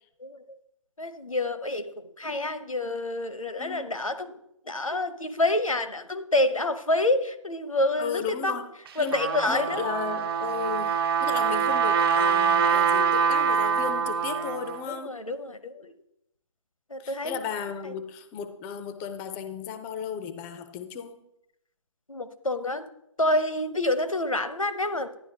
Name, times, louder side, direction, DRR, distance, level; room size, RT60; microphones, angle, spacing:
voice 1, 0.2-0.6 1.0-4.4 4.7-8.6 9.0-9.8 14.9-15.9 16.9-17.4 17.8-17.9 22.1-22.9 23.2-25.3, left 2 dB, 85° left, 0.8 m, -28 dB
voice 2, 3.6-3.9 8.0-8.6 9.0-9.2 9.5-10.9 11.2-15.1 17.0-21.2, left 7 dB, 10° left, 0.4 m, -34 dB
Trumpet, 8.9-14.8, right 6 dB, 45° right, 1.1 m, -24 dB
11.5 x 10.0 x 2.8 m
figure-of-eight pair, 135°, 17 cm